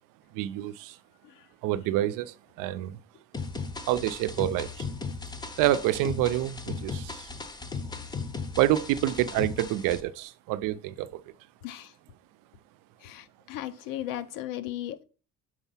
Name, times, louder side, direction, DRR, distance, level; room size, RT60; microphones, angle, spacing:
voice 1, 0.3-1.0 1.6-3.0 3.9-4.9 5.6-7.3 8.6-11.2, right 14 dB, 80° right, 0.6 m, -27 dB
sound 1, 3.3-10.0, left 4 dB, 15° left, 0.6 m, -37 dB
voice 2, 11.6-11.9 13.0-15.0, left 12 dB, 85° left, 0.9 m, -36 dB
6.4 x 4.5 x 5.6 m
cardioid pair, 160°, 32 cm